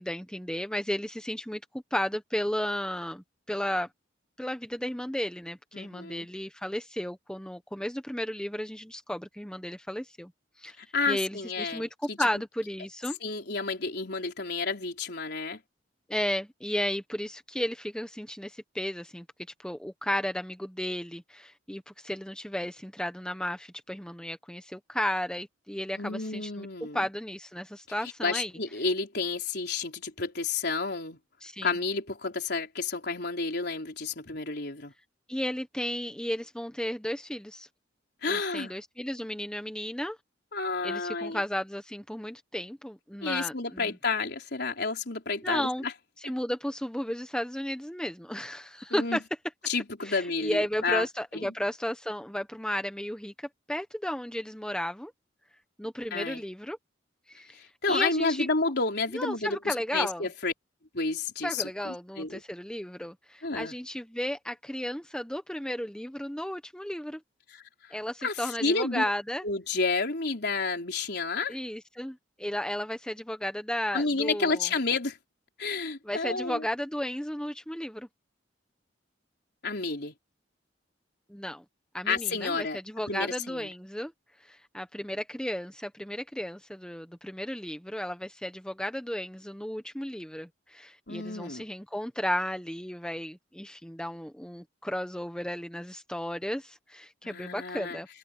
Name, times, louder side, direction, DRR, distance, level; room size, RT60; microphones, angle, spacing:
voice 1, 0.0-1.6 1.9-3.9 4.4-10.3 10.6-10.8 11.1-11.9 12.2-13.2 16.1-19.2 19.6-26.7 26.9-28.5 31.4-31.7 35.3-37.7 38.3-40.2 40.8-43.9 45.4-45.8 46.2-49.2 50.0-55.1 55.8-56.8 57.3-58.5 59.1-60.3 61.4-67.2 67.9-69.4 71.5-74.7 76.0-78.1 81.3-81.6 81.9-84.1 84.4-98.1, equal, 5° left, 1.1 m, -34 dB
voice 2, 5.7-6.3 10.8-12.3 13.2-15.6 26.0-27.0 28.2-31.2 31.6-34.9 38.2-38.8 40.5-41.4 43.2-45.9 46.2-46.3 48.9-49.2 49.7-51.1 51.3-51.5 56.1-56.4 57.5-60.5 60.9-62.4 63.4-63.7 67.5-68.0 68.2-69.1 69.4-71.6 73.9-75.2 75.6-76.6 79.6-80.1 82.1-82.8 83.1-83.7 91.1-91.7 97.2-98.0, left 4 dB, 60° left, 4.3 m, -31 dB
head